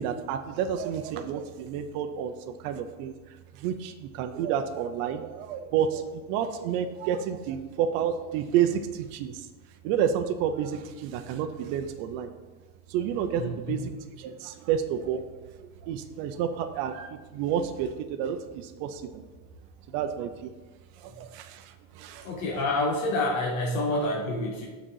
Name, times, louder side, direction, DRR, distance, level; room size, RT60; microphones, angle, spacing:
voice 1, 0.0-3.1 3.5-9.5 9.8-12.3 12.9-15.3 15.6-19.2 19.9-20.5 21.0-22.4, right 8 dB, 45° right, 6 dB, 0.5 m, -30 dB
voice 2, 13.4-13.9 22.2-24.7, left 2 dB, 90° left, -1 dB, 1.5 m, -28 dB
6.2 x 4.0 x 6.3 m, 1.3 s
supercardioid pair, 165°, 39 cm